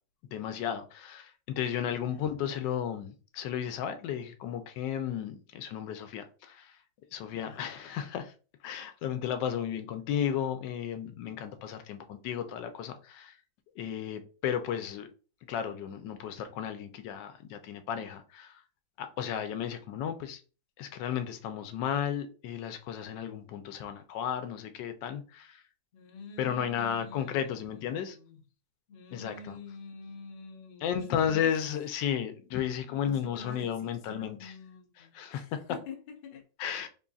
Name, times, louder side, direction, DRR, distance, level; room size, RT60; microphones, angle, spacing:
voice 1, 0.3-6.8 7.1-8.3 8.6-13.4 13.8-15.1 15.5-18.6 19.0-20.4 20.8-25.6 26.4-28.2 29.1-29.6 30.8-34.5 35.1-35.4 36.6-36.9, left 9 dB, 90° left, 1.3 m, -34 dB
voice 2, 1.6-2.4 7.3-7.7 25.9-28.4 28.9-31.6 32.8-36.9, left 5 dB, 70° left, 0.5 m, -47 dB
3.7 x 2.3 x 3.9 m
omnidirectional pair, 1.9 m